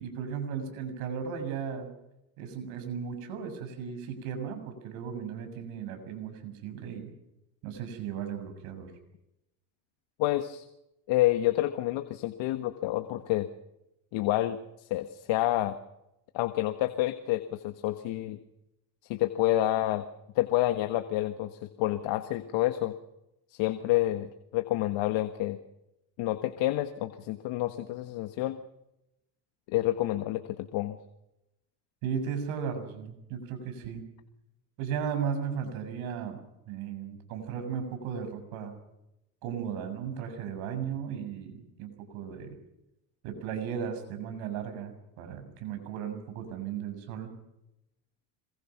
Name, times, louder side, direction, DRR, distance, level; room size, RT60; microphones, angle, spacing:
voice 1, 0.0-1.9 2.4-7.1 7.6-8.9 32.0-34.0 34.8-36.4 36.7-38.7 39.4-42.6 43.2-47.3, right 7 dB, 75° right, 7 dB, 7.1 m, -36 dB
voice 2, 10.2-10.6 11.1-13.5 14.1-15.8 16.3-18.4 19.1-20.0 20.3-22.9 23.5-25.6 26.2-28.6 29.7-31.0, left 15 dB, 65° left, 9 dB, 1.7 m, -28 dB
26.5 x 22.5 x 6.0 m, 0.87 s
supercardioid pair, 100°, 49 cm